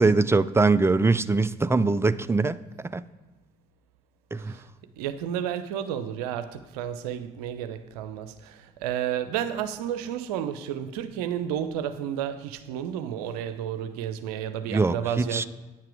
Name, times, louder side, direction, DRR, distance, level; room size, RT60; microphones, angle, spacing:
voice 1, 0.0-2.6 2.9-3.0 4.3-4.6 14.7-15.5, right 3 dB, 15° right, 0.5 m, -22 dB
voice 2, 4.3-4.7 5.0-15.5, right 9 dB, 75° right, 0.7 m, -31 dB
9.6 x 7.5 x 4.8 m
hypercardioid pair, 45°, 20 cm